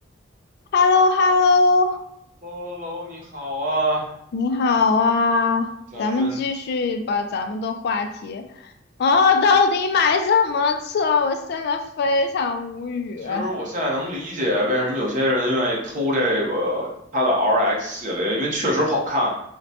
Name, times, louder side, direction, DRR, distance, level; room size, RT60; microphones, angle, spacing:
voice 1, 0.7-2.0 4.3-5.7 6.0-8.7 9.0-13.5, left 4 dB, 55° left, 7 dB, 0.3 m, -20 dB
voice 2, 2.4-4.1 5.9-6.4 13.2-19.3, equal, 40° right, -3 dB, 0.8 m, -24 dB
4.0 x 2.1 x 2.7 m, 0.78 s
head